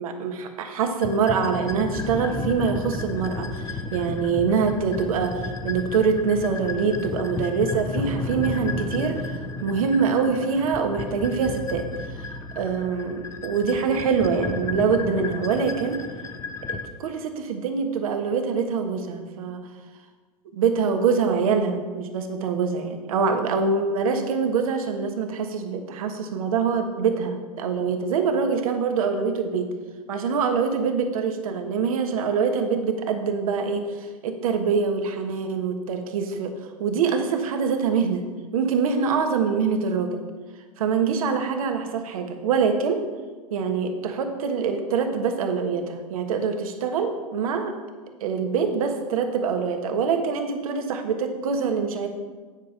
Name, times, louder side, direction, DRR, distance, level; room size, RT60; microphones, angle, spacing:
voice 1, 0.0-11.9 12.1-16.0 16.7-19.7 20.5-29.7 30.1-36.5 36.8-38.3 38.5-40.3 40.8-43.0 43.5-47.8 48.2-52.1, right 5 dB, 65° right, 6 dB, 1.3 m, -24 dB
sound 1, 1.0-16.9, left 3 dB, 15° left, 0.6 m, -33 dB
9.8 x 5.0 x 5.9 m, 1.4 s
hypercardioid pair, 105°, 19 cm